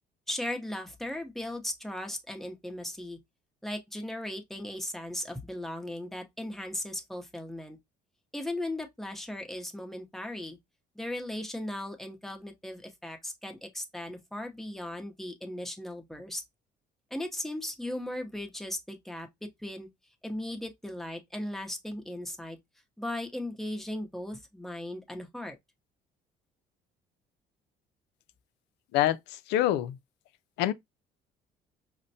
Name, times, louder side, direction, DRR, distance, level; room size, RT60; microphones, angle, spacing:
voice 1, 0.3-3.2 3.6-7.8 8.3-10.6 11.0-16.4 17.1-19.9 20.2-22.6 23.0-25.6, left 1 dB, ahead, 0.7 m, -37 dB
voice 2, 29.5-30.0 30.6-30.7, left 13 dB, 90° left, 0.4 m, -25 dB
5.1 x 2.1 x 2.6 m
cardioid pair, 110°, 17 cm